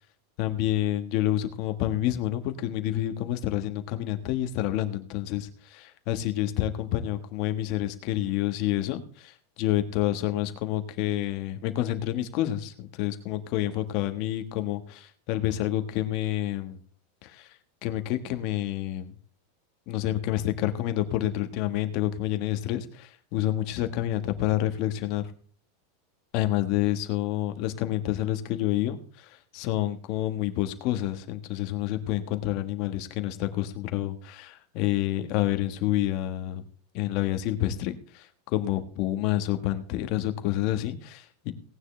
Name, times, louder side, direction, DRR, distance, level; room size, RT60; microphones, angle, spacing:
voice 1, 0.4-16.8 17.2-17.5 17.8-19.1 19.9-25.2 26.3-36.6 36.9-41.5, left 13 dB, 40° left, 7 dB, 1.3 m, -28 dB
18.0 x 9.5 x 3.3 m, 0.43 s
supercardioid pair, 165°, 0 cm